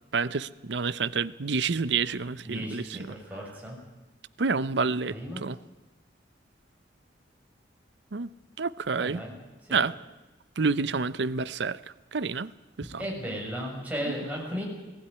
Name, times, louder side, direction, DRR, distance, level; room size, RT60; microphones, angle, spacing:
voice 1, 0.1-3.1 4.4-5.1 5.4-5.6 8.1-8.3 8.6-9.2 9.7-9.9 10.6-11.8 12.1-12.5 12.8-13.0, right 4 dB, 70° right, 17 dB, 0.7 m, -28 dB
voice 2, 2.4-3.8 5.1-5.4 8.9-9.3 9.7-9.8 13.0-14.6, equal, 10° right, -2 dB, 6.5 m, -35 dB
19.5 x 16.0 x 9.8 m, 1.1 s
head